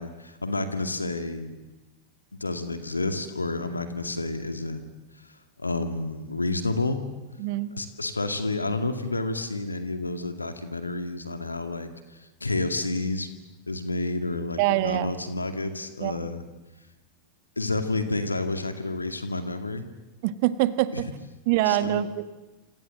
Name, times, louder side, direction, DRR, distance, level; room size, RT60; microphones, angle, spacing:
voice 1, 0.0-1.6 2.3-4.9 5.2-5.3 5.6-7.0 7.7-13.3 13.7-16.4 17.6-19.8 20.9-21.0 21.7-22.0, left 2 dB, 80° left, 8 dB, 2.2 m, -30 dB
voice 2, 7.4-7.7 14.6-15.1 16.0-16.1 20.2-21.1 21.5-22.2, right 15 dB, 50° right, 12 dB, 1.6 m, -24 dB
28.5 x 27.0 x 7.7 m, 1.1 s
figure-of-eight pair, 90°, 0 cm